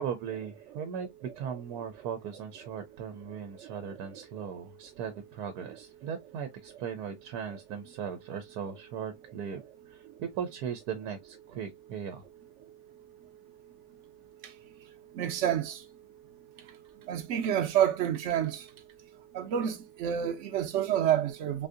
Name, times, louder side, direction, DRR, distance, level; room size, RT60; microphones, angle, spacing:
voice 1, 0.0-9.6 9.9-12.2, right 7 dB, 85° right, 1.2 m, -38 dB
voice 2, 4.1-4.5 14.4-14.5 15.1-15.8 17.1-18.7 19.3-21.7, right 10 dB, 60° right, 0.9 m, -29 dB
3.7 x 2.6 x 2.4 m
omnidirectional pair, 1.6 m